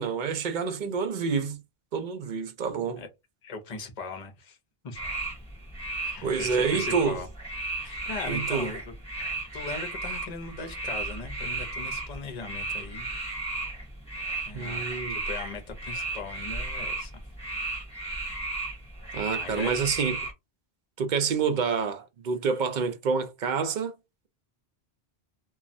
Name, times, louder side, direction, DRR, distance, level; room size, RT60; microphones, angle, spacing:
voice 1, 0.0-1.6 1.9-3.0 6.2-7.2 8.2-8.7 14.5-15.2 19.1-20.2 21.0-23.9, right 5 dB, 60° right, 0.6 m, -28 dB
voice 2, 3.4-4.6 4.8-5.0 6.0-7.3 7.8-8.8 9.5-13.1 14.4-17.2 19.3-19.8, left 4 dB, 45° left, 0.8 m, -39 dB
sound 1, 4.9-20.3, right 2 dB, 5° left, 1.5 m, -34 dB
3.0 x 2.3 x 2.5 m
omnidirectional pair, 1.0 m